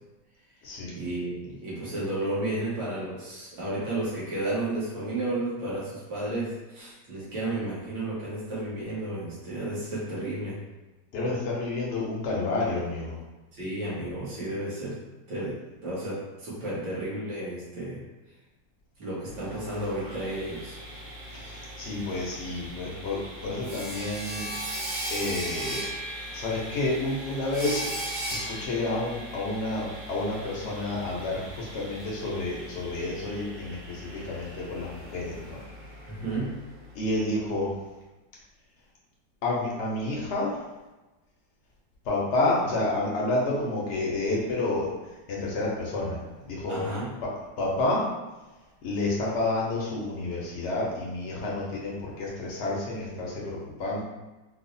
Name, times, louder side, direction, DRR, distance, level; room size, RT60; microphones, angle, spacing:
voice 1, 0.9-10.6 13.5-15.0 15.3-15.6 15.8-18.0 19.0-20.7 36.0-36.5 46.7-47.1, right 1 dB, 80° right, -8 dB, 1.8 m, -32 dB
voice 2, 11.1-13.2 21.3-24.5 25.1-25.9 26.3-27.9 28.5-35.6 36.9-37.7 39.4-40.6 42.0-44.9 45.3-46.8 47.2-47.3 47.6-48.1 48.8-54.0, left 2 dB, 75° left, -4 dB, 0.6 m, -29 dB
Sawing, 19.3-37.1, right 1 dB, 65° right, 1.5 m, -38 dB
4.6 x 2.0 x 2.6 m, 1.1 s
omnidirectional pair, 2.0 m